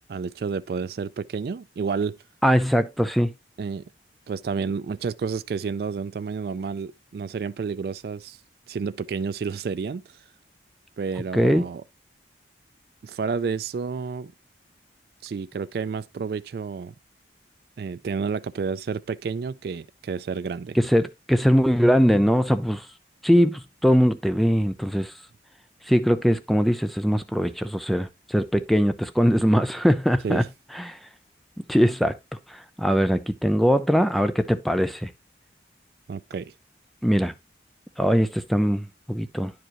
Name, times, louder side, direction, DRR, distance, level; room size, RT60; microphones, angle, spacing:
voice 1, 0.1-2.2 3.6-3.9 4.3-8.4 8.7-10.0 11.0-11.8 13.0-14.3 15.2-16.9 17.8-20.8 30.2-30.5 36.1-36.5, right 5 dB, 60° right, 0.3 m, -30 dB
voice 2, 2.4-3.3 11.3-11.7 20.8-22.8 23.2-25.1 25.9-30.4 30.8-31.0 31.7-32.2 32.8-35.1 37.0-37.3 38.0-39.5, equal, ahead, 0.5 m, -21 dB
10.0 x 4.8 x 3.0 m
head